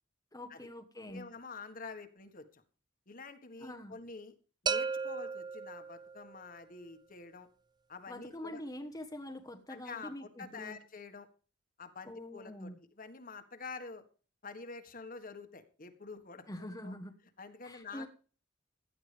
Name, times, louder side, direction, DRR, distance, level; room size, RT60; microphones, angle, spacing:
voice 1, 0.3-1.3 3.6-4.0 8.1-10.8 12.1-12.8 16.5-17.1 17.6-18.1, left 1 dB, 20° left, 4 dB, 1.2 m, -45 dB
voice 2, 1.1-2.6 3.1-4.3 4.6-7.5 7.9-8.6 9.7-11.3 11.8-14.0 14.4-17.0 17.4-18.1, left 4 dB, 45° left, 8 dB, 1.7 m, -47 dB
sound 1, 4.7-6.5, right 5 dB, 20° right, 0.5 m, -35 dB
16.5 x 12.0 x 3.5 m, 0.39 s
head